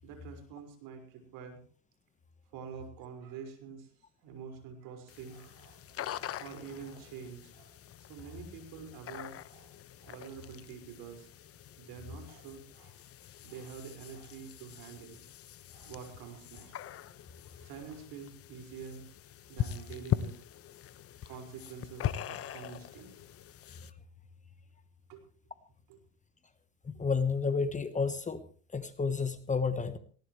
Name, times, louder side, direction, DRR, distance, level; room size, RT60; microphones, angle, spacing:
voice 1, 0.0-1.6 2.5-3.9 4.2-6.1 6.4-7.8 8.1-9.7 10.0-11.3 11.8-13.0 13.4-15.2 15.7-17.1 17.5-19.0 19.5-20.3 21.3-23.2 25.1-25.2 25.9-26.0, right 6 dB, 60° right, 5 dB, 5.6 m, -47 dB
sound 1, 5.1-23.9, left 11 dB, 35° left, 1.0 m, -42 dB
voice 2, 26.8-28.4 28.7-30.0, left 5 dB, 20° left, 11 dB, 1.3 m, -31 dB
19.0 x 17.5 x 3.3 m, 0.40 s
hypercardioid pair, 90°, 39 cm